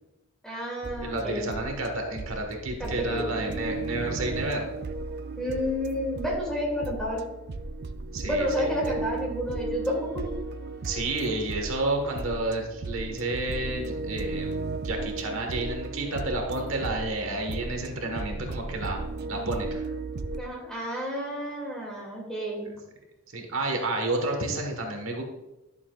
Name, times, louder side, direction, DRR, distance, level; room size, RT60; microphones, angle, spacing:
voice 1, 0.4-1.5 2.8-3.3 5.4-7.2 8.2-10.3 20.4-22.7, equal, 5° left, -3 dB, 2.3 m, -30 dB
sound 1, 0.8-20.4, right 3 dB, 50° right, 0.5 m, -35 dB
voice 2, 1.0-4.7 8.1-8.5 10.8-14.5 14.8-19.0 19.3-19.8 22.6-22.7 23.3-25.2, right 2 dB, 70° right, 2 dB, 1.4 m, -30 dB
11.5 x 7.0 x 2.4 m, 1.0 s
head